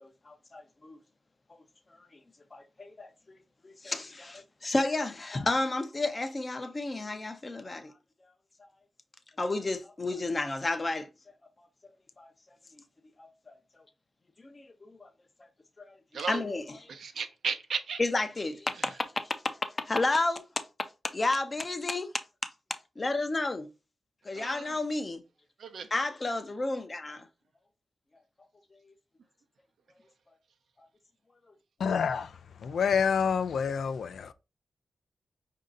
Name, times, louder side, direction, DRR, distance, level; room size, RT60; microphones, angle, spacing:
voice 1, 0.0-1.0 2.5-3.4 3.6-7.9 9.4-11.1 12.2-12.3 13.2-13.6 14.4-15.1 16.1-17.0 18.0-20.6 21.0-22.1 23.0-23.7 24.2-25.2 25.9-27.3 28.8-28.9, left 2 dB, 30° left, 0.6 m, -32 dB
voice 2, 16.1-16.5 16.9-18.0 24.3-24.7 25.6-25.9, right 6 dB, 80° right, 0.7 m, -35 dB
voice 3, 31.8-32.3 32.6-34.3, left 6 dB, 75° left, 0.4 m, -27 dB
5.1 x 2.7 x 3.8 m
wide cardioid pair, 110°, 0 cm